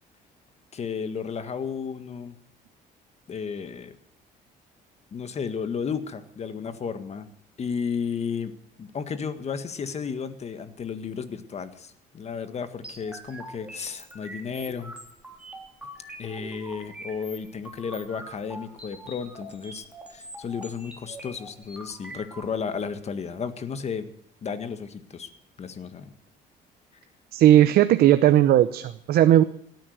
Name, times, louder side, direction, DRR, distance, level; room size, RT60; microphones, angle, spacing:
voice 1, 0.7-2.4 3.3-4.0 5.1-7.3 7.6-8.5 8.8-14.9 16.2-24.1 24.4-25.3 25.6-26.1, left 6 dB, 40° left, 11 dB, 1.7 m, -33 dB
sound 1, 12.8-22.4, right 1 dB, 5° right, 3.6 m, -43 dB
voice 2, 27.3-29.4, right 12 dB, 65° right, 12 dB, 0.8 m, -17 dB
17.5 x 9.4 x 8.0 m, 0.69 s
cardioid pair, 110°, 17 cm